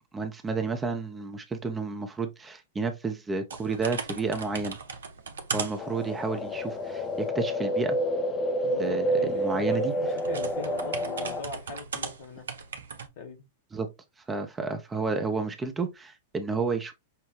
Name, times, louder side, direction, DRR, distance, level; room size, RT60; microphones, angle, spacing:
voice 1, 0.1-4.8 5.5-8.0 8.8-9.9 13.7-13.9 14.3-16.9, right 4 dB, 15° right, 0.7 m, -31 dB
sound 1, 3.5-7.3 9.3-13.1, right 5 dB, 70° right, 0.7 m, -38 dB
sound 2, 5.8-11.4, equal, 25° left, 0.6 m, -29 dB
voice 2, 8.6-12.5 13.2-13.4, left 5 dB, 55° left, 1.2 m, -41 dB
5.8 x 2.2 x 3.1 m
figure-of-eight pair, 100°, 0 cm